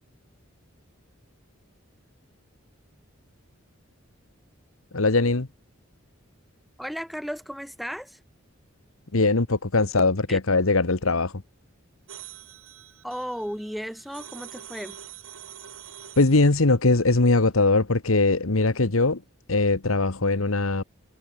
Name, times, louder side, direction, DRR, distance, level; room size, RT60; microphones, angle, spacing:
voice 1, 4.9-5.5 9.1-11.3 16.2-19.2 19.5-20.8, left 3 dB, 85° left, 1.4 m, -21 dB
voice 2, 6.8-8.2 10.3-10.4 13.0-15.0, equal, ahead, 4.7 m, -34 dB
sound 1, 12.1-16.6, right 10 dB, 85° right, 5.8 m, -45 dB
head